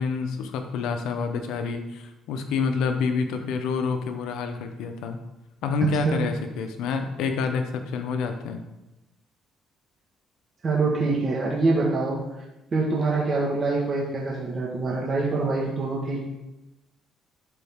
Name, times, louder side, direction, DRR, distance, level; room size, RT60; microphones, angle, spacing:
voice 1, 0.0-5.2 5.6-8.6, left 5 dB, 85° left, 7 dB, 0.8 m, -28 dB
voice 2, 10.6-12.2 12.7-16.2, right 3 dB, 40° right, -3 dB, 1.5 m, -25 dB
11.5 x 4.0 x 3.6 m, 0.97 s
cardioid pair, 105°, 0 cm